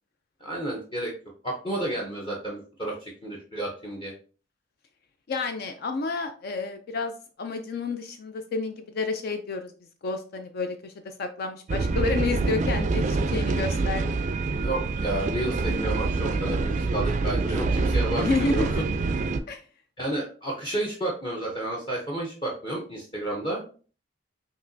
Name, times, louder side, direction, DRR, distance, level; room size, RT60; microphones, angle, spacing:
voice 1, 0.4-1.1 1.4-4.1 14.5-18.7 20.0-23.6, right 1 dB, 25° left, -3 dB, 0.8 m, -31 dB
voice 2, 5.3-9.7 10.0-14.3 18.2-18.8 19.5-19.6, left 3 dB, 55° left, 7 dB, 0.4 m, -30 dB
sound 1, 11.7-19.4, right 3 dB, 40° right, 0.3 m, -26 dB
5.3 x 2.9 x 2.6 m, 0.39 s
head